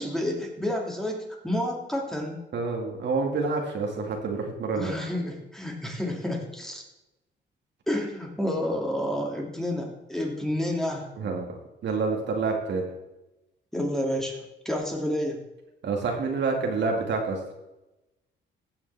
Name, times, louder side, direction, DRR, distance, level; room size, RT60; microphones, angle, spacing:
voice 1, 0.0-2.4 4.7-6.8 7.9-11.1 13.7-15.4, left 1 dB, ahead, -1 dB, 2.5 m, -30 dB
voice 2, 2.5-4.9 11.2-11.6 11.8-12.8 15.8-17.4, right 4 dB, 65° right, 1 dB, 2.1 m, -28 dB
15.5 x 7.0 x 3.5 m, 0.96 s
cardioid pair, 90°, 20 cm